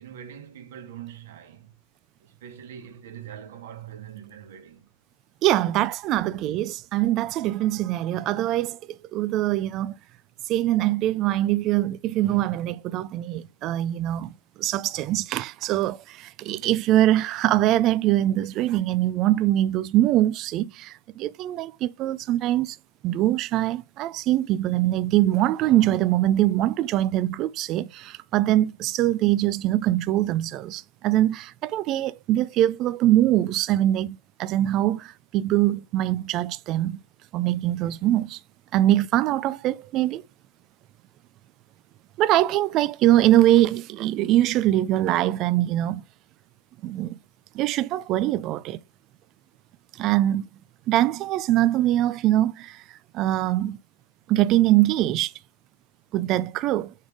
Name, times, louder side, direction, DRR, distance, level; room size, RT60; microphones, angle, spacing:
voice 1, 0.0-1.7 2.2-4.8 5.6-5.8 6.1-6.4, right 9 dB, 65° right, 1.7 m, -43 dB
voice 2, 5.4-10.0 10.5-22.8 23.0-37.0 37.3-38.4 38.7-40.2 42.2-46.0 46.8-47.2 47.5-48.8 49.9-50.5 50.9-53.8 54.3-55.3 56.1-56.9, right 14 dB, 35° right, 0.3 m, -23 dB
6.3 x 3.6 x 4.8 m
hypercardioid pair, 135°, 0 cm